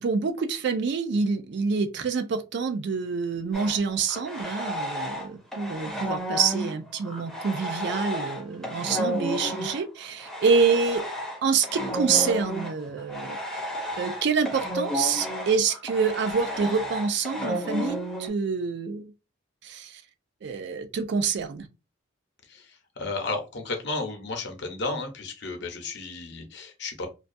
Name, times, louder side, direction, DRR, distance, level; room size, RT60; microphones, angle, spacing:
voice 1, 0.0-11.0 11.4-13.6 14.0-19.1 19.6-20.0 20.4-21.7, right 5 dB, 55° right, 0.3 m, -27 dB
sound 1, 3.5-5.3 5.5-18.3, equal, 5° left, 0.6 m, -32 dB
voice 2, 22.5-27.1, left 3 dB, 55° left, 0.7 m, -33 dB
2.3 x 2.2 x 2.5 m
head